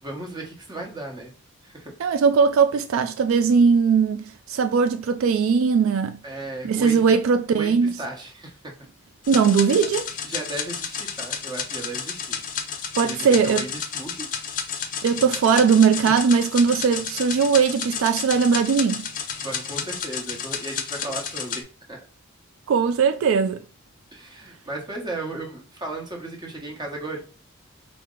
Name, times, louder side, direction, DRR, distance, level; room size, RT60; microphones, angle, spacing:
voice 1, 0.0-1.3 1.6-1.9 6.2-7.0 7.5-8.7 10.2-12.4 13.0-14.3 19.4-22.0 24.1-27.2, right 2 dB, 20° right, 0.9 m, -35 dB
voice 2, 2.0-6.2 6.6-7.9 9.3-10.1 13.0-13.7 15.0-19.1 22.7-23.6, right 6 dB, 75° right, 0.3 m, -19 dB
sound 1, 9.2-21.6, left 7 dB, 40° left, 0.5 m, -31 dB
4.4 x 2.0 x 3.6 m
head